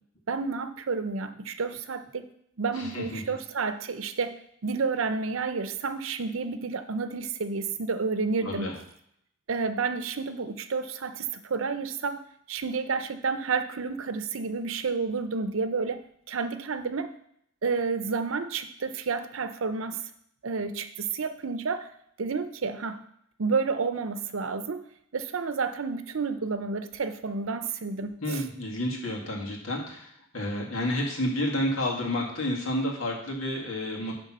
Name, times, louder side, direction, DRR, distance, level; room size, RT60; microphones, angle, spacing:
voice 1, 0.3-2.3 2.6-4.3 4.6-8.8 9.5-12.2 12.5-17.1 17.6-20.0 20.4-21.9 22.2-23.0 23.4-24.9 25.1-28.4, right 4 dB, 85° right, 10 dB, 0.7 m, -30 dB
voice 2, 2.7-3.2 8.4-8.7 28.2-34.1, left 1 dB, 90° left, -1 dB, 2.1 m, -30 dB
9.9 x 3.7 x 6.2 m, 0.71 s
head